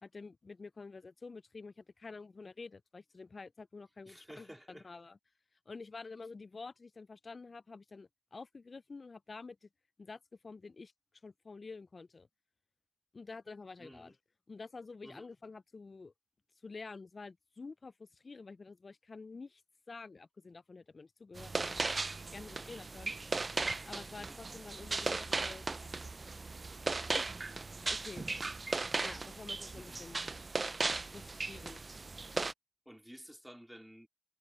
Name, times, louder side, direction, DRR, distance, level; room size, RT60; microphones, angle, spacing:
voice 1, 0.0-5.2 5.7-9.7 10.0-10.9 11.2-12.3 13.1-14.2 14.5-16.1 16.6-19.6 19.9-21.7 22.3-23.5 23.9-25.7 27.1-27.4 27.9-28.3 29.0-30.2 31.1-31.9, left 4 dB, 55° left, 0.3 m, -49 dB
voice 2, 4.1-4.9 13.8-14.1 15.0-15.3 24.0-24.4 29.7-30.1 32.9-34.1, equal, 5° right, 2.1 m, -53 dB
sound 1, 21.3-32.5, right 3 dB, 50° right, 0.3 m, -37 dB
cardioid pair, 60°, 0 cm